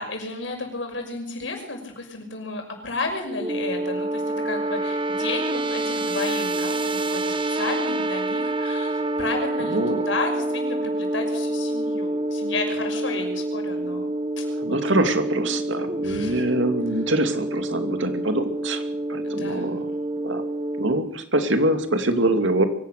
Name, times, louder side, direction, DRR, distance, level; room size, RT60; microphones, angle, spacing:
voice 1, 0.0-14.8 16.0-16.4 19.2-19.6, left 3 dB, 80° left, 3 dB, 6.0 m, -32 dB
sound 1, 3.3-21.0, right 2 dB, 25° right, 0.9 m, -27 dB
voice 2, 9.7-10.0 14.5-18.8 19.1-19.9 20.2-20.4 20.8-22.7, right 1 dB, 80° right, 7 dB, 2.6 m, -24 dB
23.5 x 16.5 x 6.7 m, 0.69 s
head